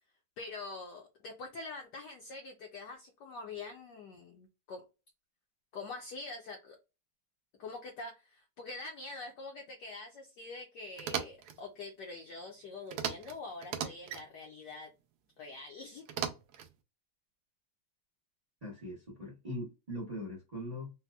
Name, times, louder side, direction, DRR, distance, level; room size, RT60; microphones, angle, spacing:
voice 1, 0.4-4.8 5.7-6.8 7.6-14.9 15.4-16.1, left 3 dB, 70° left, 1.1 m, -45 dB
sound 1, 11.0-11.6 12.9-13.3 13.6-14.2 16.1-16.7, right 8 dB, 80° right, 0.8 m, -37 dB
voice 2, 18.6-20.9, left 1 dB, 65° right, 0.4 m, -41 dB
4.1 x 2.2 x 2.2 m
omnidirectional pair, 2.3 m